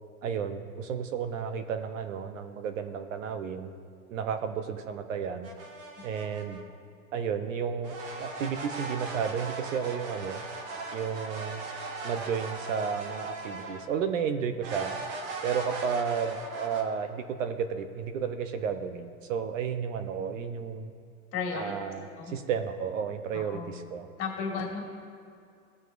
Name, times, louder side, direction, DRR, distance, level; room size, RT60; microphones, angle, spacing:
voice 1, 0.2-3.7 4.1-5.5 6.0-6.6 7.1-10.4 10.9-11.6 12.0-15.0 15.4-20.9 21.5-24.1, right 7 dB, 55° right, 8 dB, 0.8 m, -32 dB
sound 1, 5.4-6.6 7.8-14.0 14.6-16.8, right 3 dB, 35° right, 1.2 m, -38 dB
voice 2, 21.3-21.7 22.2-22.4 23.3-23.7 24.2-24.9, left 5 dB, 30° left, -1 dB, 2.2 m, -34 dB
17.0 x 6.2 x 2.6 m, 2.4 s
hypercardioid pair, 140°, 45 cm